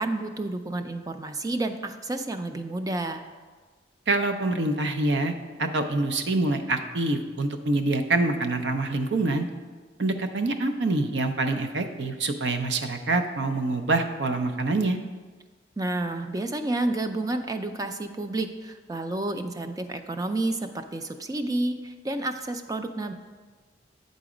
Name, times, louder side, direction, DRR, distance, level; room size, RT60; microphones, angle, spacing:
voice 1, 0.0-3.2 15.8-23.1, right 2 dB, 20° right, 8 dB, 0.4 m, -30 dB
voice 2, 4.1-5.3 5.6-9.5 10.0-15.0, right 2 dB, 70° right, 7 dB, 0.6 m, -25 dB
8.5 x 4.0 x 4.9 m, 1.4 s
head